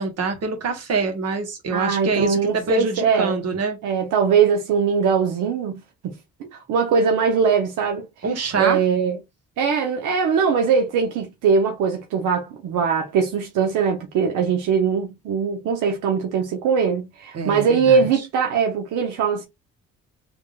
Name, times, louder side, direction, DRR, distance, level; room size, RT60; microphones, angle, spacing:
voice 1, 0.0-3.8 8.2-8.8 17.3-18.2, right 4 dB, 55° right, 1.5 m, -25 dB
voice 2, 1.7-3.4 3.8-6.1 6.4-8.1 8.6-9.2 9.6-19.4, right 6 dB, 85° right, 0.9 m, -21 dB
3.6 x 3.5 x 2.4 m
cardioid pair, 90°, 30 cm